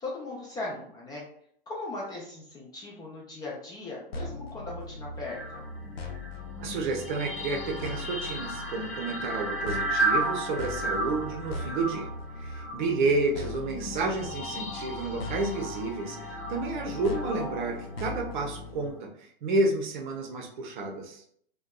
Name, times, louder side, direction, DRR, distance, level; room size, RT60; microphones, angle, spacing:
voice 1, 0.0-1.2 1.7-5.6 12.9-13.3, left 2 dB, 15° left, -4 dB, 0.4 m, -39 dB
sound 1, 4.1-18.9, left 3 dB, 80° left, 0.6 m, -40 dB
sound 2, 5.2-19.0, right 2 dB, 65° left, 1.0 m, -35 dB
voice 2, 6.6-12.1 12.4-21.2, right 3 dB, 50° right, 2 dB, 0.7 m, -30 dB
2.6 x 2.2 x 2.2 m, 0.65 s
figure-of-eight pair, 105°, 30 cm